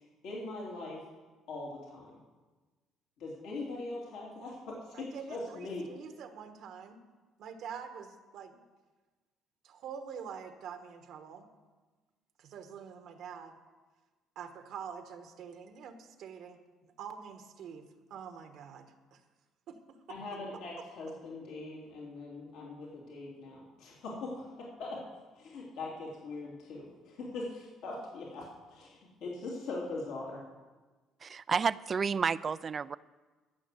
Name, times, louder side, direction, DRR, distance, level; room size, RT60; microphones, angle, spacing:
voice 1, 0.2-1.0 1.5-2.1 3.2-5.9 20.1-25.0 25.4-30.4, left 2 dB, 75° left, -4 dB, 2.9 m, -41 dB
voice 2, 4.9-7.0 7.4-8.5 9.6-11.5 12.4-13.6 14.3-19.2 19.7-20.2, right 7 dB, 70° right, 7 dB, 1.3 m, -46 dB
voice 3, 31.2-33.0, right 6 dB, 40° right, 18 dB, 0.4 m, -31 dB
13.5 x 6.1 x 8.1 m, 1.3 s
cardioid pair, 90°, 0 cm